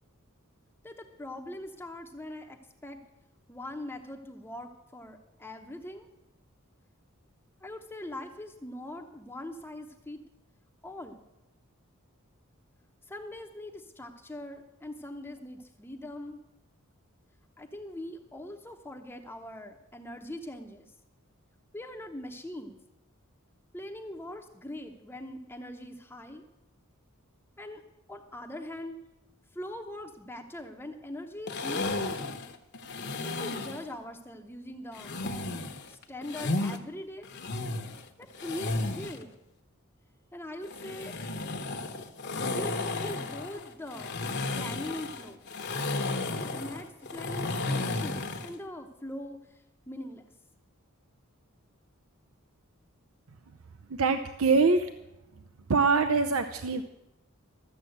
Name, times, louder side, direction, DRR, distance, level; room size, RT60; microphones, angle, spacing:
voice 1, 0.8-2.6 2.8-3.0 3.5-6.1 7.6-10.2 10.8-11.2 13.1-16.4 17.6-20.9 21.7-22.8 23.7-26.4 27.6-27.8 28.1-29.0 29.5-32.0 33.2-35.6 35.9-37.3 38.2-39.3 40.3-41.1 42.4-44.1 44.6-45.4 46.4-50.3, left 1 dB, 10° left, 3 dB, 0.8 m, -42 dB
sound 1, 31.5-33.9 34.9-36.8 37.2-39.2 40.6-48.6, left 2 dB, 55° left, 1.1 m, -33 dB
voice 2, 53.9-54.9 55.7-56.8, right 4 dB, 75° right, 8 dB, 0.6 m, -24 dB
13.5 x 7.3 x 7.9 m, 0.93 s
head